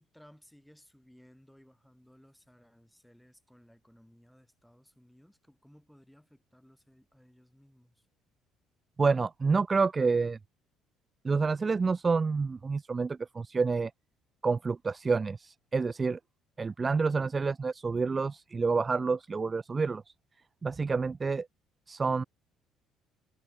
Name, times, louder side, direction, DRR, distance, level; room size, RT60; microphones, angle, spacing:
voice 1, 0.0-8.0, equal, ahead, 7.7 m, -60 dB
voice 2, 9.0-10.4 11.2-13.9 14.4-16.2 16.6-20.0 20.6-21.5 21.9-22.2, right 4 dB, 25° right, 0.4 m, -28 dB
cardioid pair, 125°, 0 cm